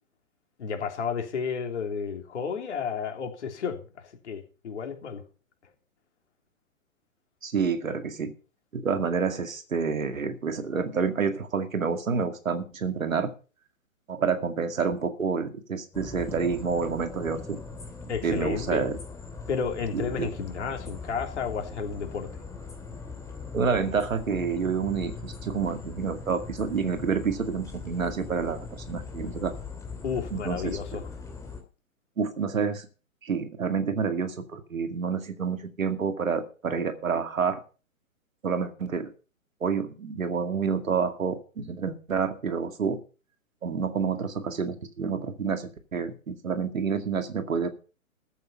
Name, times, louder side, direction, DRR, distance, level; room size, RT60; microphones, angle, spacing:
voice 1, 0.6-5.2 18.1-18.9 19.5-22.4 30.0-31.1, left 6 dB, 55° left, 4 dB, 3.4 m, -32 dB
voice 2, 7.4-8.3 8.7-13.3 14.1-17.6 18.2-19.0 19.9-20.3 23.5-29.6 30.3-30.8 32.2-32.9 33.2-37.6 38.4-39.1 39.6-43.0 43.6-47.7, right 5 dB, 65° right, 8 dB, 2.2 m, -28 dB
sound 1, 15.9-31.6, left 4 dB, 5° left, 2.8 m, -40 dB
14.5 x 8.4 x 5.5 m, 0.37 s
figure-of-eight pair, 120°, 42 cm